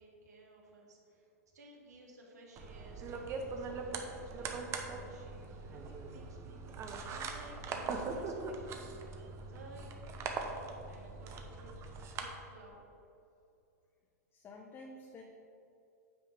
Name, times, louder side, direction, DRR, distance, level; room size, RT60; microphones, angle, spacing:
voice 1, 0.0-8.6 9.5-9.9 10.2-11.8 12.1-12.9, right 2 dB, 80° right, -1 dB, 2.0 m, -57 dB
sound 1, 2.6-12.2, right 4 dB, 30° right, 1.0 m, -41 dB
voice 2, 14.3-15.2, left 2 dB, 25° left, 0 dB, 0.9 m, -50 dB
8.9 x 5.5 x 5.0 m, 2.6 s
hypercardioid pair, 110°, 9 cm